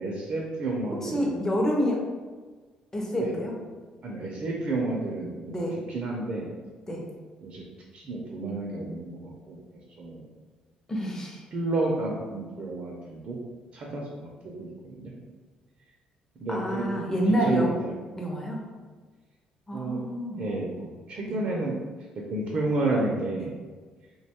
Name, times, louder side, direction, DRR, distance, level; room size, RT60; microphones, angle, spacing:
voice 1, 0.0-1.4 3.2-3.4 4.0-5.6 5.9-6.5 7.4-7.7 7.9-9.6 10.0-10.3 11.5-13.4 13.7-15.1 16.4-16.8 17.3-18.0 19.7-20.1 20.4-21.8 22.3-23.5, right 2 dB, 50° right, -2 dB, 0.5 m, -31 dB
voice 2, 1.0-2.0 2.9-3.5 5.5-5.8 6.9-7.1 10.9-11.4 16.5-17.7 18.1-18.6 19.7-20.4 21.3-21.4, equal, 20° left, -1 dB, 0.6 m, -28 dB
2.6 x 2.2 x 2.8 m, 1.4 s
cardioid pair, 95°, 3 cm